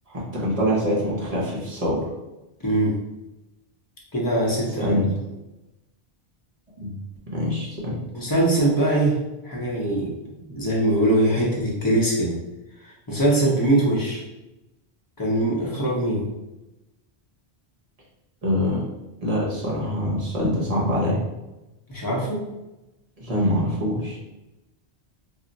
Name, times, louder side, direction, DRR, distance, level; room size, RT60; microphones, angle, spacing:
voice 1, 0.1-2.1 4.8-5.1 6.8-6.9 7.3-8.0 18.4-18.8 19.2-21.2 23.2-24.2, equal, 40° right, -5 dB, 0.8 m, -24 dB
voice 2, 2.6-2.9 4.1-5.0 8.1-9.2 9.4-10.1 10.5-12.3 13.1-14.2 15.2-16.2 21.9-22.4, right 1 dB, 25° left, -4 dB, 0.7 m, -22 dB
2.4 x 2.1 x 3.8 m, 0.98 s
omnidirectional pair, 1.1 m